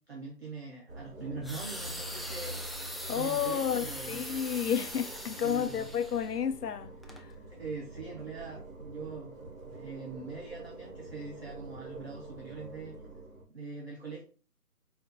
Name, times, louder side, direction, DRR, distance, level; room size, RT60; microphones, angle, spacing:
voice 1, 0.0-2.8 3.1-4.2 5.4-5.9 7.6-13.0 13.5-14.2, right 4 dB, 40° right, 0.8 m, -43 dB
sound 1, 0.9-13.4, right 2 dB, 60° right, 1.1 m, -46 dB
sound 2, 1.4-6.4 7.0-7.2, equal, ahead, 0.3 m, -41 dB
voice 2, 3.1-7.3, left 8 dB, 75° left, 0.6 m, -31 dB
4.2 x 2.4 x 4.0 m
figure-of-eight pair, 170°, 47 cm